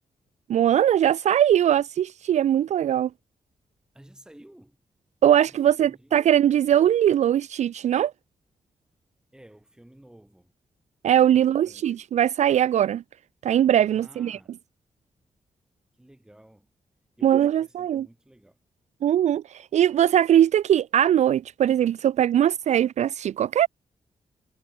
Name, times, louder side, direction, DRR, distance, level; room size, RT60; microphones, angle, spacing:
voice 1, 0.5-3.1 5.2-8.1 11.0-13.0 13.4-14.4 17.2-18.1 19.0-23.7, right 10 dB, 65° right, 0.4 m, -21 dB
voice 2, 3.9-4.8 5.4-6.2 9.3-10.5 11.3-12.1 13.9-14.6 16.0-16.7 17.2-18.6, right 1 dB, 5° right, 4.3 m, -53 dB
wide cardioid pair, 175°, 13 cm